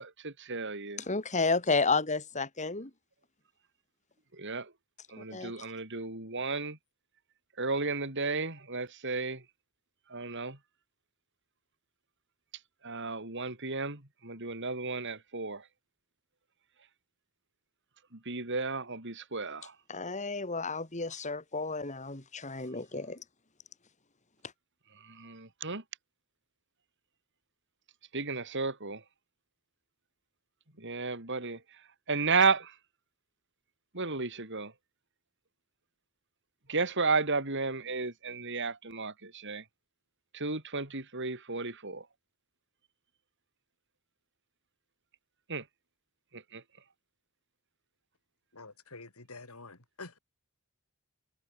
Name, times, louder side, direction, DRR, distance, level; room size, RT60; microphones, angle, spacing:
voice 1, 0.0-1.0 4.3-4.7 5.1-6.8 7.6-9.4 10.1-10.6 12.8-15.6 18.1-19.7 25.0-25.8 28.1-29.0 30.8-31.6 32.1-32.7 33.9-34.7 36.7-39.6 40.3-42.0 45.5-45.6 46.3-46.6, right 4 dB, 55° right, 4.9 m, -33 dB
voice 2, 1.0-2.9 5.2-5.5 19.9-23.2, left 3 dB, 35° left, 3.1 m, -31 dB
voice 3, 48.5-50.2, left 3 dB, 75° left, 4.9 m, -48 dB
head